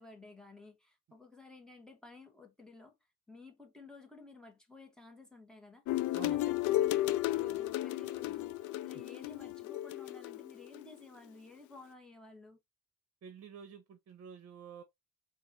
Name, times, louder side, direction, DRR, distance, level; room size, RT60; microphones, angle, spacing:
voice 1, 0.0-2.9 3.3-12.6, left 3 dB, ahead, 1.5 m, -54 dB
sound 1, 5.9-10.8, left 14 dB, 75° left, 0.5 m, -33 dB
voice 2, 13.2-14.8, right 7 dB, 55° right, 0.8 m, -50 dB
4.6 x 2.6 x 2.7 m
cardioid pair, 90°, 30 cm